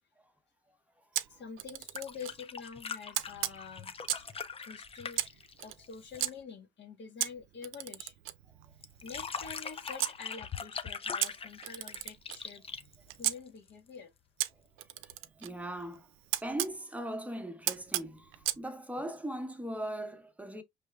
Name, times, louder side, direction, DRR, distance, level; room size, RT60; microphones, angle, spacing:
Camera, 1.1-2.4 3.1-4.4 5.1-6.3 7.2-10.2 11.2-13.4 14.4-16.8 17.7-18.6, right 14 dB, 85° right, 0.4 m, -36 dB
voice 1, 1.3-4.2 4.6-8.1 9.0-12.6 13.2-14.1, left 6 dB, 65° left, 1.4 m, -47 dB
sound 1, 1.7-6.4 8.8-13.7 15.1-15.2, left 6 dB, 30° left, 0.5 m, -42 dB
voice 2, 15.4-16.1 16.4-20.6, right 1 dB, 5° right, 0.9 m, -39 dB
4.9 x 3.2 x 2.2 m
cardioid pair, 90°, 20 cm